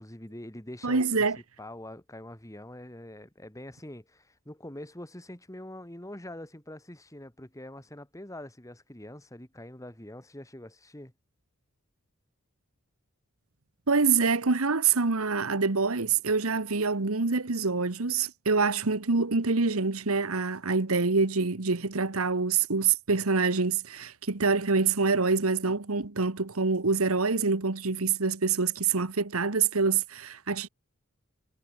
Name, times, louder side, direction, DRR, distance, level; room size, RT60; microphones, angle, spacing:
voice 1, 0.0-11.1, left 1 dB, 15° left, 2.2 m, -44 dB
voice 2, 0.8-1.4 13.9-30.7, right 4 dB, 85° right, 1.4 m, -26 dB
head